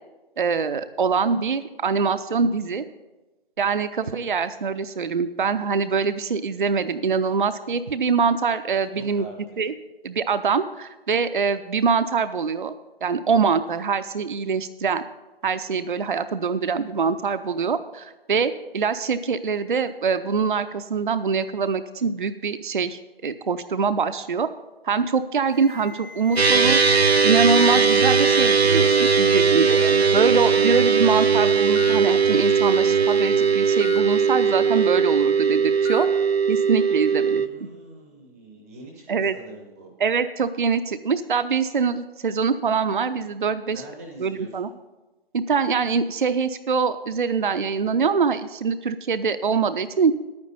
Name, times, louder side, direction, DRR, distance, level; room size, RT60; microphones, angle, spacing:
voice 1, 0.4-2.8 3.6-9.3 9.6-9.7 10.0-12.7 13.0-15.0 15.4-24.5 24.8-26.8 27.2-29.8 30.1-36.1 36.5-37.4 39.1-39.3 40.0-43.8 44.2-44.7 45.3-50.1, right 5 dB, 55° right, 11 dB, 0.5 m, -24 dB
voice 2, 8.9-9.3 37.3-39.9 43.7-44.7, right 2 dB, 10° right, 1 dB, 0.6 m, -43 dB
Alarm, 25.5-29.5 29.8-30.2 31.0-31.1 31.8-32.0 33.8-34.0 35.8-36.1, left 4 dB, 75° left, 1.5 m, -36 dB
sound 1, 26.4-37.5, right 5 dB, 85° right, 0.7 m, -19 dB
10.5 x 9.6 x 5.4 m, 1.1 s
figure-of-eight pair, 150°, 30 cm